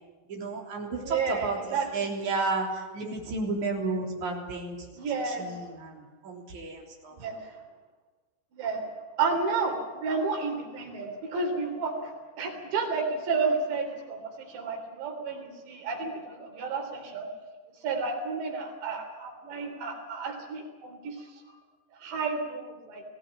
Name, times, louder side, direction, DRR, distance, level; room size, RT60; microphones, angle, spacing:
voice 1, 0.3-1.6 1.9-4.8 5.2-7.1, right 3 dB, 45° right, 0 dB, 4.7 m, -32 dB
voice 2, 1.0-2.0 5.0-5.7 7.1-7.4 8.5-8.8 9.2-12.1 12.4-17.3 17.8-21.3 22.0-23.0, right 4 dB, 85° right, 3 dB, 5.7 m, -31 dB
21.0 x 16.5 x 9.4 m, 1.3 s
omnidirectional pair, 5.0 m